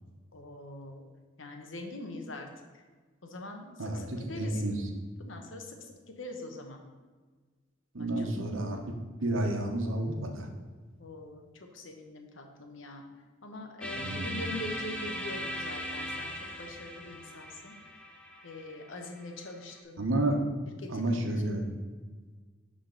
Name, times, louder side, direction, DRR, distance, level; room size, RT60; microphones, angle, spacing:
voice 1, 0.3-1.1 1.4-2.5 3.2-4.6 5.2-6.8 8.2-8.3 11.0-13.0 13.4-16.3 16.6-17.7 18.4-20.1 20.8-21.2 21.5-21.6, left 2 dB, 75° left, 3 dB, 1.1 m, -43 dB
voice 2, 3.8-4.9 7.9-8.8 9.2-10.5 13.9-14.4 20.0-20.4 20.9-21.7, right 1 dB, 90° right, 3 dB, 1.1 m, -30 dB
sound 1, 13.8-19.7, equal, 5° left, 0.7 m, -39 dB
11.5 x 3.9 x 3.9 m, 1.4 s
head